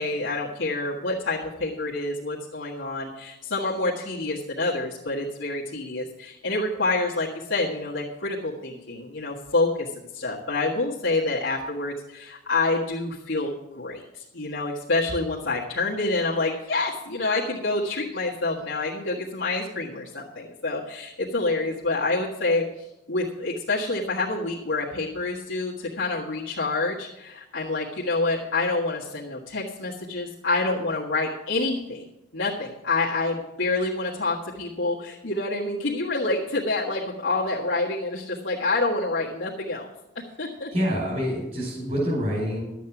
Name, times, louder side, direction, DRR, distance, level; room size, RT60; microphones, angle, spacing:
voice 1, 0.0-32.0 32.3-39.9 40.4-40.7, left 2 dB, 80° left, -6 dB, 1.6 m, -27 dB
voice 2, 40.7-42.6, equal, 40° right, -6 dB, 4.7 m, -26 dB
12.0 x 8.4 x 6.0 m, 0.95 s
head